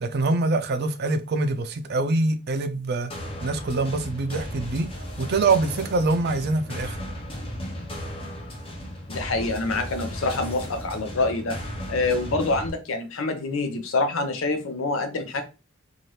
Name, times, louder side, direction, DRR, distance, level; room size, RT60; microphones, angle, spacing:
voice 1, 0.0-3.1 3.4-4.9 5.2-7.0, right 3 dB, 55° right, 0.4 m, -24 dB
sound 1, 3.1-12.7, equal, 25° left, 0.8 m, -35 dB
voice 2, 9.1-11.6 11.9-15.4, left 3 dB, 75° left, 0.6 m, -26 dB
2.8 x 2.4 x 3.1 m
head